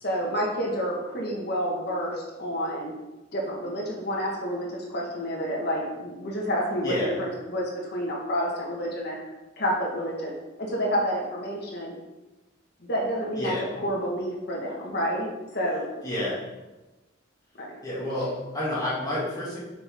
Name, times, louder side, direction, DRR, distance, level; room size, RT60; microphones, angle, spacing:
voice 1, 0.0-2.9 3.3-9.2 9.6-10.3 10.6-12.0 12.8-13.5 13.8-15.9 17.6-17.8 18.2-18.3, equal, 55° left, -2 dB, 1.7 m, -29 dB
voice 2, 16.0-16.4 17.8-19.6, left 1 dB, 20° left, -9 dB, 2.6 m, -29 dB
8.5 x 5.8 x 3.7 m, 1.1 s
head